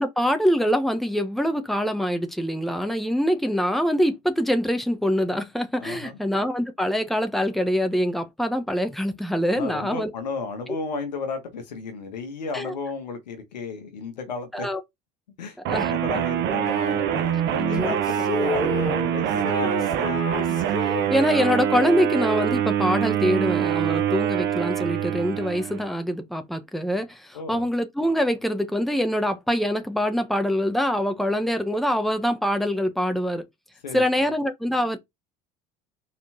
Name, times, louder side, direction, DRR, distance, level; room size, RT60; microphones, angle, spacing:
voice 1, 0.0-10.1 12.5-12.7 14.5-14.8 15.7-15.9 17.6-17.9 20.5-20.6 20.8-33.4 33.9-35.0, equal, ahead, 1.4 m, -24 dB
voice 2, 5.8-6.2 9.5-14.7 15.4-20.2 21.0-21.2 27.3-27.7 33.8-34.3, left 4 dB, 85° left, 1.6 m, -34 dB
sound 1, 15.7-25.9, right 9 dB, 55° right, 1.0 m, -24 dB
Female singing, 16.6-23.1, left 3 dB, 20° left, 2.3 m, -33 dB
5.0 x 4.4 x 4.3 m
hypercardioid pair, 65°, 21 cm